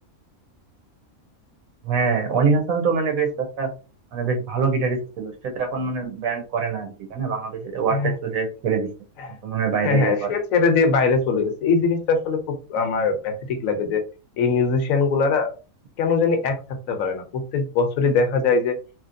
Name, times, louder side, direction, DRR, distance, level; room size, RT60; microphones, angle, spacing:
voice 1, 1.8-3.7 4.1-8.9 9.4-10.3, right 5 dB, 85° right, 4 dB, 1.3 m, -24 dB
voice 2, 9.8-14.0 14.4-15.5 16.0-16.6 16.9-18.8, left 4 dB, 75° left, 6 dB, 1.1 m, -21 dB
2.9 x 2.9 x 2.5 m, 0.33 s
omnidirectional pair, 1.4 m